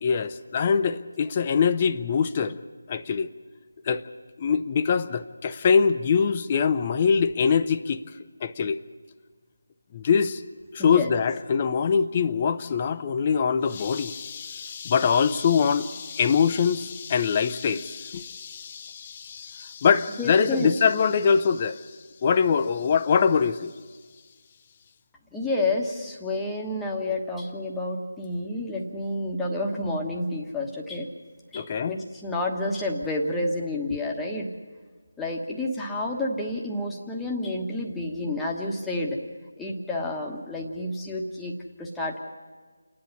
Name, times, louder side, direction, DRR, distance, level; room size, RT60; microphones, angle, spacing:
voice 1, 0.0-2.6 2.9-3.3 3.9-4.0 4.4-8.0 8.4-8.8 9.9-10.4 10.7-23.7 31.5-32.0, left 6 dB, 25° left, 10 dB, 0.7 m, -23 dB
voice 2, 10.8-11.1 20.2-20.7 25.3-31.1 31.5-34.5 35.2-39.2 39.6-42.2, left 2 dB, 5° left, -2 dB, 1.3 m, -29 dB
28.0 x 10.5 x 9.8 m, 1.5 s
figure-of-eight pair, 160°, 0 cm